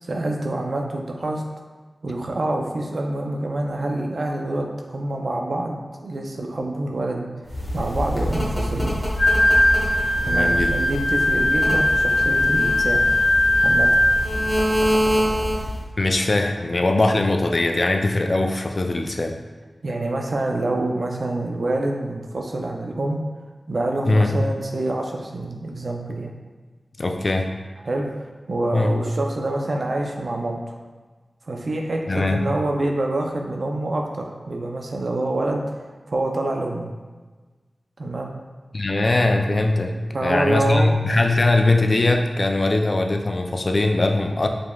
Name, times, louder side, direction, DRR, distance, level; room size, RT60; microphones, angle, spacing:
voice 1, 0.0-1.4 2.0-7.3 7.7-9.0 10.2-13.1 13.6-13.9 19.8-23.2 23.7-26.3 27.8-28.1 28.5-30.7 31.5-35.6 36.1-36.9 38.0-38.3 40.1-41.0, right 2 dB, 70° right, 1 dB, 0.5 m, -26 dB
sound 1, 7.5-15.8, equal, ahead, 1.2 m, -26 dB
Wind instrument woodwind instrument, 9.2-14.6, left 1 dB, 85° left, 1.3 m, -19 dB
voice 2, 10.2-10.8 16.0-19.4 24.0-24.4 27.0-27.5 28.7-29.0 32.1-32.4 38.7-40.0 40.2-44.5, left 2 dB, 50° left, 4 dB, 0.4 m, -21 dB
5.0 x 3.4 x 2.3 m, 1.3 s
cardioid pair, 50°, 0 cm